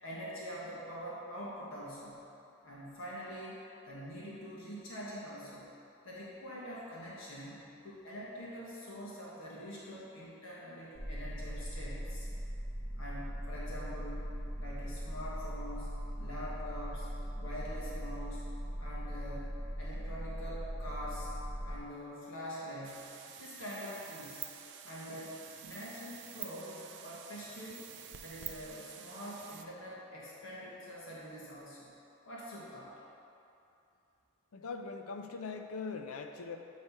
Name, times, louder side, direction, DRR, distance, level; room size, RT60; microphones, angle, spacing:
voice 1, 0.0-2.3 2.6-3.6 3.9-5.7 6.0-12.3 13.0-14.3 14.6-17.1 17.4-18.5 18.8-19.5 19.8-21.3 21.6-24.5 24.8-27.9 28.2-31.9 32.2-32.9, equal, 65° left, -7 dB, 1.2 m, -45 dB
sound 1, 10.9-21.8, equal, 5° right, 0.6 m, -40 dB
sound 2, 22.8-29.6, right 10 dB, 50° right, 0.4 m, -48 dB
voice 2, 34.5-36.6, left 4 dB, 80° left, 5 dB, 0.5 m, -41 dB
8.6 x 3.2 x 5.5 m, 2.8 s
head